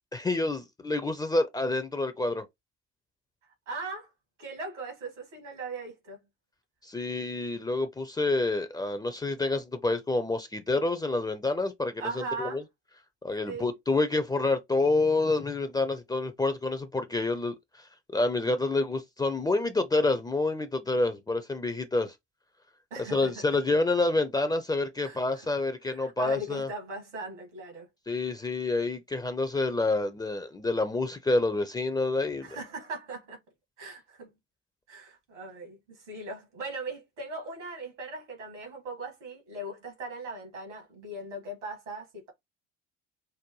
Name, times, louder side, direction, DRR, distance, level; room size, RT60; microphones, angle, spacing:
voice 1, 0.1-2.5 6.8-12.6 13.2-17.6 18.1-22.1 23.1-26.7 28.1-32.6, left 2 dB, 10° left, 0.5 m, -28 dB
voice 2, 3.7-4.1 4.4-6.2 12.0-12.6 13.5-13.7 22.9-23.4 25.0-25.5 25.9-27.9 32.4-33.4 33.8-34.3 34.9-42.3, right 2 dB, 75° right, 2.0 m, -39 dB
5.4 x 2.1 x 3.0 m
figure-of-eight pair, 60°, 36 cm